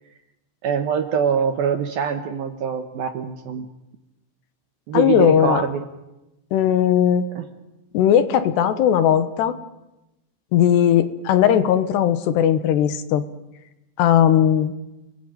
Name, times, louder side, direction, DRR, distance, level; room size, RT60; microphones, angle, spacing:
voice 1, 0.6-3.7 4.9-5.8 7.4-7.5, right 7 dB, 65° right, 7 dB, 2.4 m, -24 dB
voice 2, 4.9-5.6 6.5-7.3 7.9-9.6 10.5-13.2 14.0-14.7, left 9 dB, 70° left, 12 dB, 3.0 m, -18 dB
29.5 x 20.0 x 9.2 m, 0.97 s
omnidirectional pair, 5.7 m